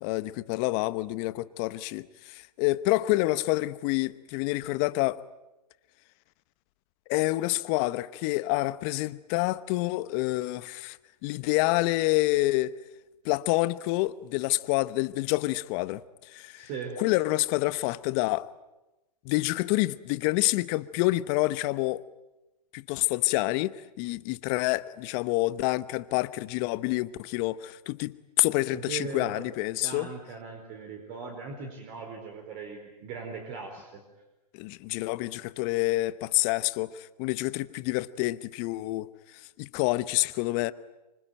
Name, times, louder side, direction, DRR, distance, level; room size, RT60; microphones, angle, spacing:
voice 1, 0.0-5.2 7.1-11.0 11.2-12.8 13.2-16.0 16.3-16.7 17.0-18.5 19.2-22.0 22.7-30.1 34.5-39.1 39.6-40.7, left 19 dB, 35° left, 1.0 m, -27 dB
voice 2, 16.6-17.0 28.7-29.4 29.8-34.0, right 5 dB, 40° right, 4.6 m, -39 dB
26.0 x 25.0 x 9.2 m
hypercardioid pair, 125°, 20 cm